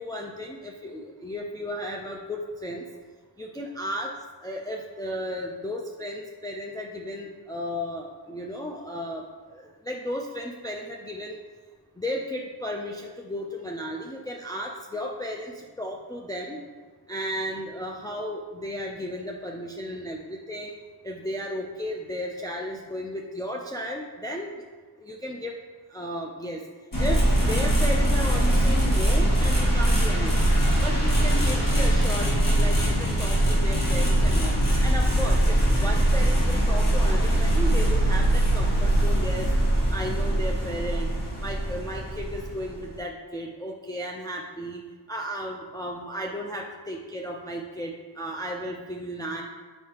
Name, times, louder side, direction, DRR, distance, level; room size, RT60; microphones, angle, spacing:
voice 1, 0.0-2.8 3.4-4.1 4.4-11.4 12.0-16.6 17.1-20.7 21.0-24.6 25.0-25.5 25.9-26.6 27.0-30.5 30.8-34.6 34.8-39.5 39.9-41.1 41.4-44.8 45.1-49.4, equal, 10° left, -1 dB, 0.5 m, -34 dB
sound 1, 26.9-43.0, right 1 dB, 45° left, 1.7 m, -22 dB
7.6 x 5.5 x 2.9 m, 1.4 s
wide cardioid pair, 85°, 45 cm